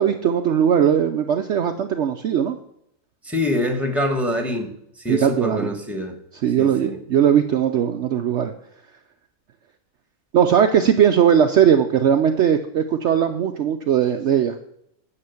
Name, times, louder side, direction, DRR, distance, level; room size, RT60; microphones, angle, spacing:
voice 1, 0.0-2.6 5.1-5.7 6.4-8.5 10.3-14.6, right 8 dB, 65° right, 6 dB, 0.8 m, -19 dB
voice 2, 3.2-4.7 5.0-6.1 6.6-7.0, left 1 dB, ahead, 5 dB, 1.4 m, -25 dB
9.7 x 5.8 x 7.0 m, 0.74 s
omnidirectional pair, 1.5 m